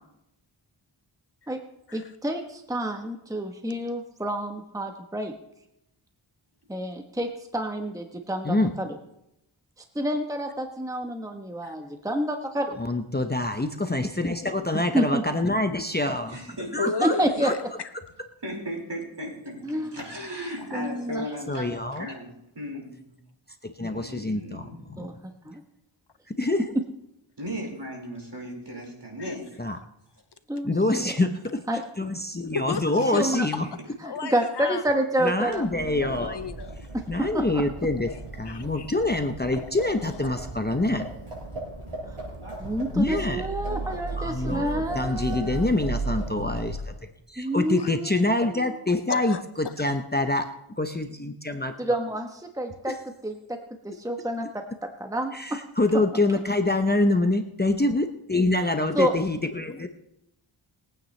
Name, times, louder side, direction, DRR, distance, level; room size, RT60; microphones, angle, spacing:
voice 1, 1.9-5.3 6.7-9.0 9.9-12.8 14.9-15.2 17.0-17.5 19.6-20.0 20.7-21.2 25.0-25.1 25.4-25.6 30.5-30.7 31.7-31.8 33.1-33.5 34.0-36.1 36.9-37.6 42.1-42.2 42.6-45.6 47.4-48.7 51.8-52.9 53.2-53.6 53.8-54.6 55.0-55.6 58.9-59.1, right 1 dB, 5° right, 4 dB, 1.1 m, -29 dB
voice 2, 12.8-16.4 16.7-17.6 17.9-18.0 21.5-22.1 23.6-25.1 26.3-26.7 29.6-29.8 30.6-31.6 32.0-33.7 35.2-36.4 37.1-41.1 42.9-43.5 44.2-47.0 47.3-50.5 50.8-52.0 52.9-53.0 55.3-59.9, left 2 dB, 20° left, 5 dB, 0.8 m, -26 dB
voice 3, 16.3-16.7 18.4-22.3 22.5-23.2 23.8-25.1 27.4-29.6 33.2-33.3 44.6-45.6, equal, 55° right, -1 dB, 4.9 m, -37 dB
voice 4, 16.8-17.9 29.2-29.3 32.5-32.8 33.1-33.2 34.0-34.8 36.1-36.9 38.5-38.9 47.8-47.9 49.1-49.4, left 5 dB, 55° left, 12 dB, 0.7 m, -33 dB
Livestock farm animals working animals, 35.5-47.1, right 3 dB, 90° right, 5.0 m, -36 dB
22.0 x 9.1 x 3.3 m, 0.82 s
wide cardioid pair, 60°, 50 cm